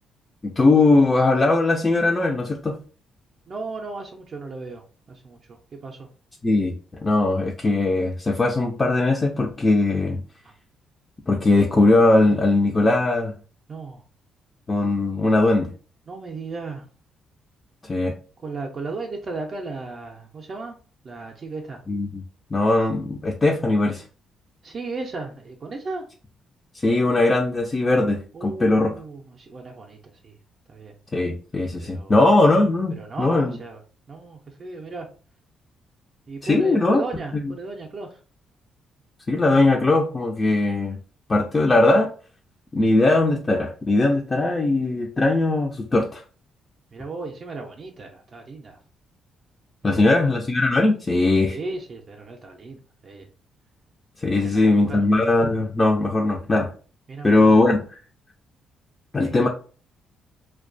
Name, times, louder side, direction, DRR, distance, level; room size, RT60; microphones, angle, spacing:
voice 1, 0.4-2.8 6.4-6.8 7.0-10.2 11.3-13.3 14.7-15.7 17.8-18.2 21.9-22.2 22.5-24.0 26.8-28.9 31.1-33.6 36.4-37.0 37.3-37.5 39.3-41.0 41.3-42.1 42.7-46.2 49.8-51.6 54.2-56.7 57.2-58.0 59.1-59.5, left 2 dB, 25° left, 0 dB, 0.4 m, -20 dB
voice 2, 3.5-6.1 10.4-10.5 13.7-14.0 16.1-16.9 18.4-20.8 21.0-21.8 24.6-26.0 28.3-30.4 30.7-30.9 31.8-32.2 33.0-33.8 34.1-35.1 36.3-38.2 46.9-48.8 49.9-50.2 51.5-53.3 54.3-55.0 57.1-57.7 59.2-59.5, right 3 dB, 45° right, 1 dB, 0.4 m, -35 dB
2.3 x 2.2 x 2.5 m, 0.38 s
cardioid pair, 90°, 0 cm